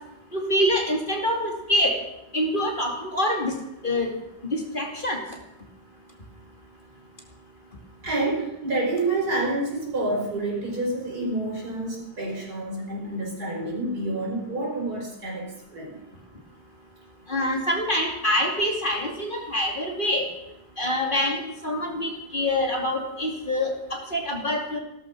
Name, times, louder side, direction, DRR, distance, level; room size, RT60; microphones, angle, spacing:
voice 1, 0.3-2.0 2.3-3.5 3.8-4.1 4.5-5.2 17.3-20.2 20.8-24.8, left 1 dB, 30° left, 1 dB, 2.7 m, -25 dB
voice 2, 8.0-16.0, right 2 dB, 75° right, -1 dB, 5.8 m, -28 dB
16.0 x 13.0 x 6.0 m, 0.89 s
omnidirectional pair, 1.7 m